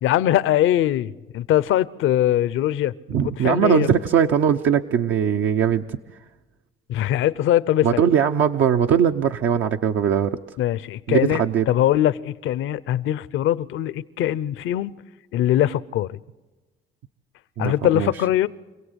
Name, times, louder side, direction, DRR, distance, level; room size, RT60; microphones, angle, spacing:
voice 1, 0.0-2.9 3.4-4.0 6.9-8.0 10.6-14.9 15.3-16.2 17.6-18.5, left 12 dB, 85° left, 0.7 m, -21 dB
voice 2, 3.1-5.9 7.8-10.6 11.1-11.7 17.6-18.1, right 8 dB, 80° right, 0.8 m, -20 dB
26.5 x 17.0 x 8.1 m
cardioid pair, 90°, 20 cm